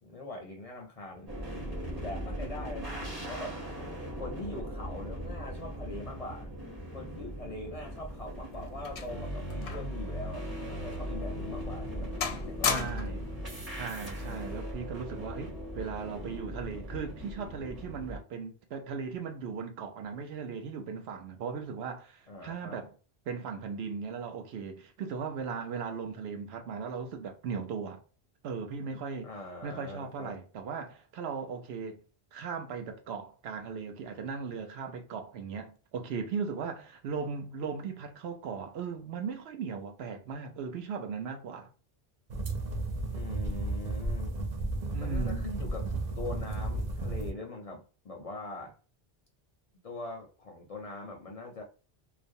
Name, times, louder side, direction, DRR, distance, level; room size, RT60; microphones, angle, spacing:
voice 1, 0.0-1.3 2.0-3.6 4.2-6.5 6.9-12.1 12.5-13.3 14.1-14.7 22.3-22.8 29.2-30.4 43.1-44.4 45.0-48.7 49.8-51.6, left 2 dB, 50° left, 0.5 m, -42 dB
sound 1, 1.3-18.2, equal, 25° right, 0.8 m, -39 dB
sound 2, 7.9-10.0 10.3-10.5 11.1-11.2 11.7-12.0 12.2-13.3 14.2-14.5, left 7 dB, 85° left, 0.8 m, -35 dB
voice 2, 12.6-13.3 13.7-22.9 23.3-28.0 28.4-29.3 29.6-32.0 32.3-41.7 44.9-45.5, right 5 dB, 80° right, 0.8 m, -38 dB
sound 3, 42.3-47.3, right 2 dB, 55° right, 0.5 m, -33 dB
2.4 x 2.0 x 2.5 m
omnidirectional pair, 1.1 m